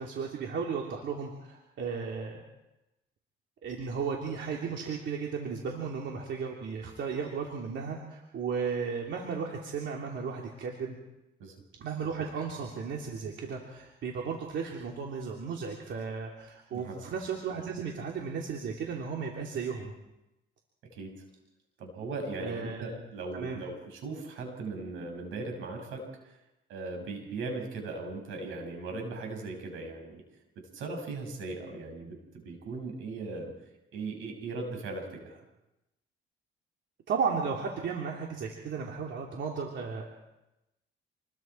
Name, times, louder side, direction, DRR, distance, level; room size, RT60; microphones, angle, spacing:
voice 1, 0.0-2.4 3.6-11.0 11.8-19.9 22.4-23.0 23.3-23.6 37.1-40.1, right 5 dB, 70° right, 0 dB, 3.1 m, -35 dB
voice 2, 21.8-26.4 26.7-30.2 30.5-33.5 33.9-35.4, right 3 dB, 90° right, 3 dB, 6.5 m, -38 dB
28.5 x 21.5 x 4.7 m, 0.92 s
cardioid pair, 90°, 20 cm